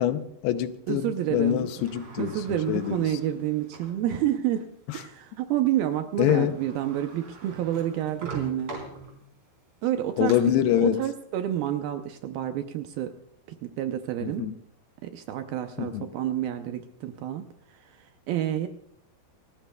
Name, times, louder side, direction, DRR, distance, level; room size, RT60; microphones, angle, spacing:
voice 1, 0.0-3.2 4.9-5.0 6.2-6.5 10.2-11.0 14.2-14.6 15.8-16.1, left 11 dB, 80° left, 10 dB, 2.6 m, -25 dB
voice 2, 0.9-1.7 2.2-8.7 9.8-10.3 10.8-13.1 13.6-14.5 15.0-17.4 18.3-18.7, right 11 dB, 75° right, 7 dB, 2.3 m, -29 dB
Sliding door, 1.4-4.0 4.6-4.7 6.0-6.1 6.3-9.5 9.9-10.3, right 3 dB, 35° right, 4.5 m, -43 dB
28.0 x 14.5 x 2.3 m, 0.71 s
omnidirectional pair, 4.9 m